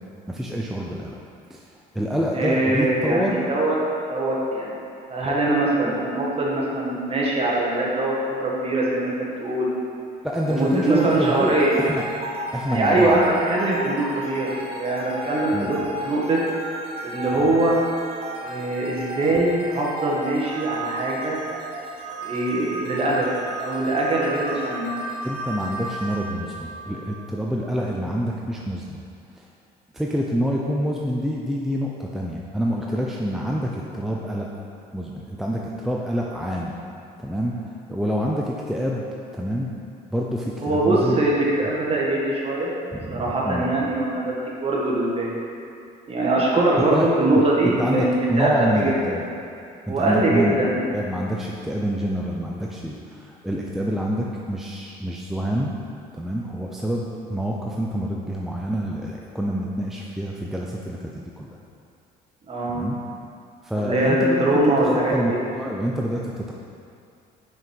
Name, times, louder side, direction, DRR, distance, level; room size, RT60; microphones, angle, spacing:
voice 1, 0.3-1.2 1.5-1.6 1.9-3.5 10.2-12.0 12.5-13.2 15.5-15.7 25.2-29.0 29.3-29.5 29.9-34.5 34.9-36.8 37.2-39.0 39.3-39.7 40.1-41.2 42.9-43.7 46.8-47.1 47.3-49.2 49.9-50.6 50.9-55.8 56.1-61.5 62.7-63.0 63.6-64.5 64.8-66.5, equal, ahead, -2 dB, 0.5 m, -27 dB
voice 2, 2.3-3.7 4.1-4.8 5.1-9.7 10.4-11.8 12.6-16.4 17.0-17.8 18.4-21.4 22.2-23.3 23.6-24.9 40.6-42.7 43.1-45.3 46.1-49.1 49.9-50.8 62.5-62.8 63.7-65.4, right 2 dB, 35° right, -4 dB, 1.6 m, -22 dB
sound 1, 10.3-27.5, right 1 dB, 70° right, 1.4 m, -34 dB
6.2 x 4.7 x 5.2 m, 2.5 s
cardioid pair, 110°, 17 cm